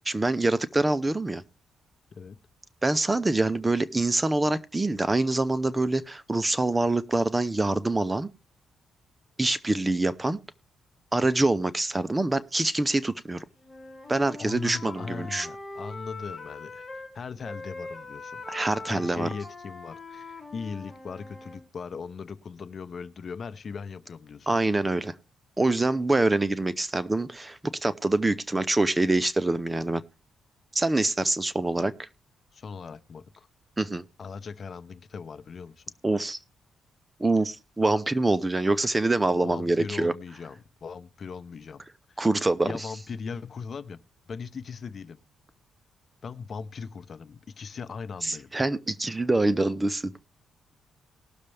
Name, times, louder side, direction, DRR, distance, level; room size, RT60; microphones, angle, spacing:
voice 1, 0.1-1.4 2.8-8.3 9.4-10.4 11.1-13.4 14.1-15.5 18.5-19.3 24.5-25.1 25.6-30.0 30.7-32.1 33.8-34.0 36.0-36.4 37.2-40.1 42.2-42.9 48.2-50.1, right 2 dB, 15° right, 0.6 m, -25 dB
Wind instrument woodwind instrument, 13.6-17.1 17.4-21.6, left 3 dB, 20° left, 3.1 m, -42 dB
voice 2, 14.4-18.4 18.9-24.5 32.5-33.5 34.2-35.8 39.4-42.2 42.6-44.0 44.3-45.2 46.2-48.5, left 5 dB, 45° left, 0.8 m, -39 dB
19.0 x 6.6 x 3.4 m
cardioid pair, 110°, 0 cm